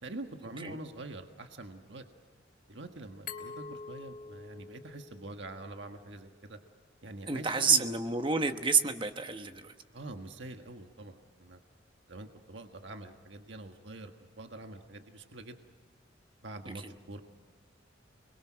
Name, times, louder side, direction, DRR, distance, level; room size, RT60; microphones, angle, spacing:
voice 1, 0.0-2.0 2.7-6.6 7.0-7.9 9.9-11.6 12.1-15.6 16.4-17.2, right 2 dB, 70° right, 5 dB, 1.5 m, -45 dB
Glass, 3.3-6.1, left 4 dB, 50° left, 3.1 m, -46 dB
voice 2, 7.3-9.7 16.8-16.9, right 5 dB, 25° right, 7 dB, 1.1 m, -29 dB
29.0 x 22.0 x 6.3 m, 1.5 s
head